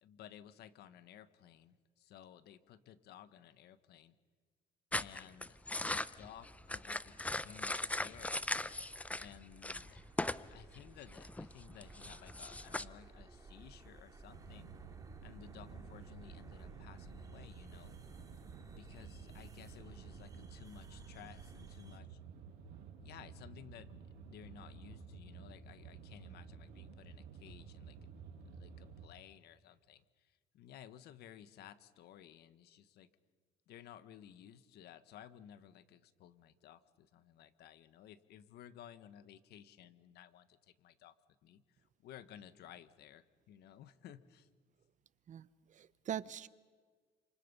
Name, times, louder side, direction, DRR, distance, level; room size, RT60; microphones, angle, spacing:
voice 1, 0.0-4.2 4.9-8.4 9.2-10.0 10.5-14.8 15.2-18.0 18.6-22.2 23.0-23.9 24.2-28.2 28.5-33.1 33.7-41.1 41.4-44.5, left 10 dB, 75° left, 13 dB, 1.4 m, -56 dB
sound 1, 4.9-9.3 9.6-10.5 10.7-12.8, left 2 dB, 10° left, 0.6 m, -39 dB
sound 2, 5.3-22.0, right 3 dB, 20° right, 2.2 m, -58 dB
sound 3, 14.3-29.1, right 5 dB, 75° right, 5.0 m, -53 dB
voice 2, 45.3-46.5, right 10 dB, 45° right, 16 dB, 0.9 m, -42 dB
28.5 x 27.0 x 5.6 m, 1.5 s
cardioid pair, 110°, 17 cm